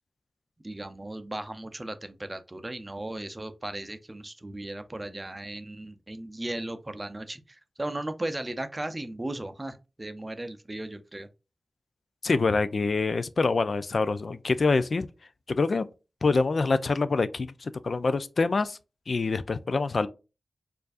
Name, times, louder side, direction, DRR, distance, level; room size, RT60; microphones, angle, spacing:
voice 1, 0.6-11.3, right 1 dB, 25° right, 0.5 m, -36 dB
voice 2, 12.2-15.1 15.5-15.9 16.2-18.8 19.1-20.1, left 3 dB, 60° left, 0.3 m, -25 dB
4.5 x 2.5 x 2.4 m
wide cardioid pair, 75°, 0 cm